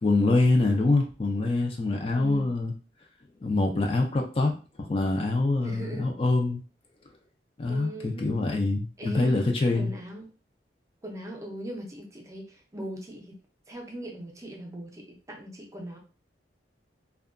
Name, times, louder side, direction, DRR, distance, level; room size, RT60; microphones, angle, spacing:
voice 1, 0.0-2.7 3.4-4.5 4.8-6.6 7.6-9.9, left 2 dB, 30° left, 3 dB, 0.4 m, -25 dB
voice 2, 2.1-2.5 5.6-6.1 7.7-8.4 9.0-9.4 9.7-10.3 11.0-13.4 13.7-16.0, equal, 20° right, 1 dB, 0.5 m, -39 dB
2.6 x 2.3 x 2.4 m, 0.34 s
head